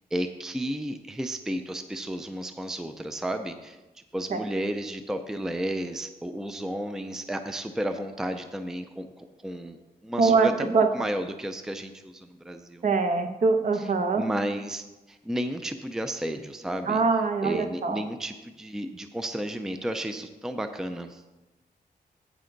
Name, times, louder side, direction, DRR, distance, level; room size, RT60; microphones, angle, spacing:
voice 1, 0.1-9.8 10.0-12.8 13.7-13.9 14.2-17.0 17.4-21.2, right 1 dB, 5° right, 7 dB, 0.4 m, -33 dB
voice 2, 10.2-10.5 10.7-10.9 12.8-14.3 16.9-18.0, right 4 dB, 55° right, 6 dB, 0.8 m, -23 dB
9.5 x 8.5 x 3.9 m, 1.1 s
wide cardioid pair, 170°, 16 cm